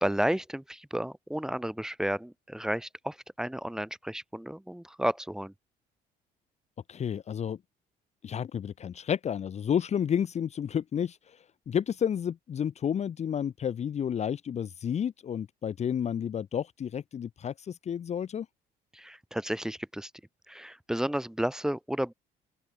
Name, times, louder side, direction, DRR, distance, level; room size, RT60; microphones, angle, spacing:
voice 1, 0.0-5.5 18.9-20.1 20.5-22.1, equal, 5° right, 2.6 m, -32 dB
voice 2, 6.9-7.6 8.2-11.4 11.7-18.5, left 8 dB, 40° left, 1.1 m, -31 dB
open air
cardioid pair, 110°, 17 cm